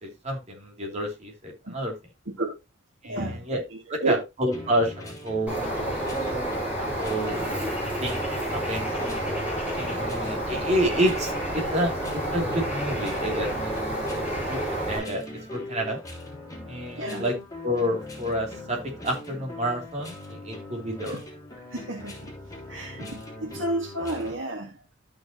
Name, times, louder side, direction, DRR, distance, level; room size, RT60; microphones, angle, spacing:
voice 1, 0.0-1.9 3.0-3.6 3.9-5.6 6.8-7.5 8.0-8.9 9.8-13.8 14.1-15.2 15.5-16.0 16.7-17.4 17.6-21.2, equal, 35° right, 2.9 m, -29 dB
voice 2, 3.0-3.5 4.0-4.2 17.0-17.2 21.1-21.2 21.7-22.3 22.7-24.9, right 2 dB, 80° right, 2.1 m, -31 dB
sound 1, 4.5-24.3, left 2 dB, 20° left, 3.4 m, -40 dB
Bird, 5.5-15.0, right 1 dB, 5° right, 5.7 m, -29 dB
13.5 x 6.0 x 2.9 m
head